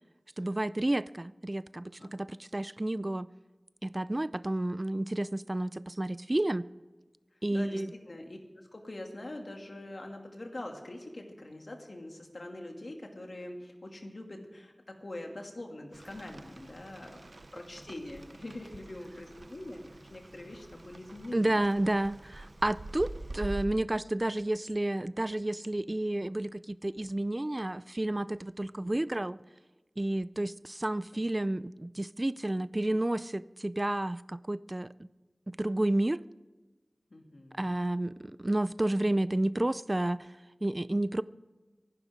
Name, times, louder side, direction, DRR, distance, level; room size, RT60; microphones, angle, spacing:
voice 1, 0.4-3.3 3.8-6.7 7.4-7.9 21.3-29.4 30.0-35.1 35.5-36.2 37.6-40.3 40.6-41.2, right 1 dB, 35° right, 0.4 m, -31 dB
voice 2, 7.5-17.2 17.5-21.6 26.1-26.2 28.8-29.1 31.1-31.2 37.1-37.7, left 1 dB, 70° left, 2.5 m, -44 dB
Rain, 15.9-23.7, right 2 dB, 70° right, 0.8 m, -46 dB
25.0 x 11.5 x 3.7 m
wide cardioid pair, 50°, 0 cm